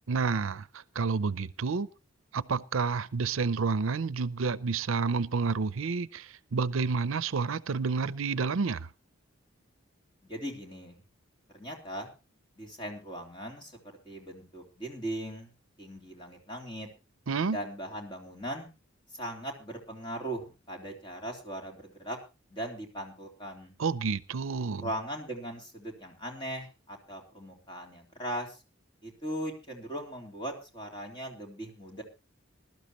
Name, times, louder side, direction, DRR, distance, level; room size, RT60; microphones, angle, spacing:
voice 1, 0.1-1.9 2.3-8.9 17.3-17.6 23.8-24.9, right 4 dB, 85° right, 0.6 m, -29 dB
voice 2, 10.2-11.0 11.5-12.1 12.6-15.5 15.8-16.9 17.5-18.7 19.1-22.2 22.5-23.7 24.8-28.6 29.0-32.0, right 1 dB, 25° left, 3.3 m, -39 dB
21.0 x 12.5 x 3.0 m
head